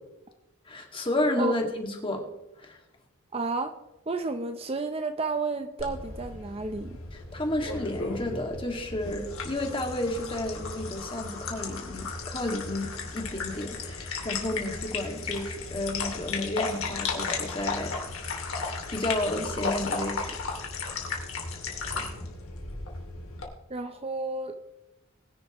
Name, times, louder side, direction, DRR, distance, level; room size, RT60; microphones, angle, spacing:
voice 1, 0.7-2.2 2.6-2.8 7.1-17.9 18.9-20.4 20.6-20.7, left 1 dB, 25° left, 2 dB, 2.0 m, -31 dB
voice 2, 3.3-3.7 4.1-7.0 23.7-24.6, right 3 dB, 30° right, 8 dB, 0.6 m, -31 dB
sound 1, 5.8-23.4, left 4 dB, 80° left, 2.6 m, -35 dB
21.0 x 10.5 x 3.0 m, 0.95 s
head